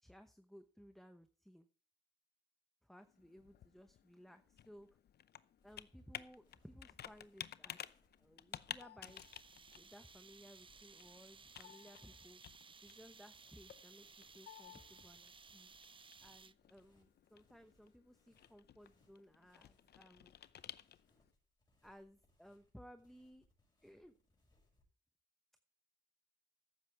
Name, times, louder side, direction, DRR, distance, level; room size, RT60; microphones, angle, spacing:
voice 1, 0.0-1.7 2.9-4.9 5.6-7.8 8.2-9.2 9.7-12.4 12.8-15.7 16.2-20.3 21.8-23.5 23.8-24.1, equal, ahead, 8 dB, 0.9 m, -60 dB
Computer keyboard, 3.0-21.3, left 10 dB, 55° left, 0.7 m, -54 dB
sound 1, 5.6-24.8, left 2 dB, 20° left, 6.1 m, -75 dB
sound 2, 9.0-16.8, right 5 dB, 25° right, 0.6 m, -60 dB
14.5 x 10.5 x 3.4 m, 0.40 s
cardioid pair, 90°, 20 cm